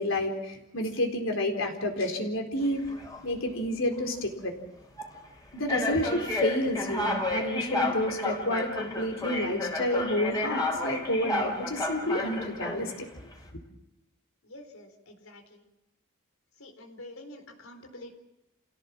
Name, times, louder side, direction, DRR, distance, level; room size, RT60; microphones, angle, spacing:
voice 1, 0.0-2.8 3.2-4.5 5.5-12.9, left 1 dB, 70° left, 3 dB, 4.2 m, -30 dB
sound 1, 2.6-3.2 3.9-4.1 5.0-5.1 5.7-13.0, left 2 dB, 20° left, 4.3 m, -31 dB
voice 2, 14.4-15.6 16.6-18.1, left 1 dB, 90° left, 6 dB, 4.2 m, -47 dB
28.5 x 17.0 x 7.5 m, 0.95 s
head